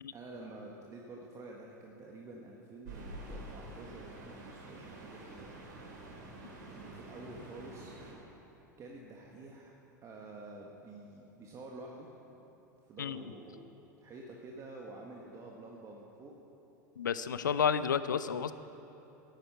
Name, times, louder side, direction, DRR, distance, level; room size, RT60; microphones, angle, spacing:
voice 1, 0.1-5.5 6.7-8.0 8.8-9.7 10.0-12.1 12.8-13.7 14.0-16.4 17.4-17.6, right 2 dB, 30° right, -1 dB, 1.6 m, -49 dB
sound 1, 2.8-8.1, right 2 dB, 70° right, 3.4 m, -48 dB
voice 2, 17.0-18.5, left 7 dB, 80° left, 14 dB, 0.5 m, -31 dB
11.5 x 10.5 x 8.0 m, 3.0 s
hypercardioid pair, 85°, 10 cm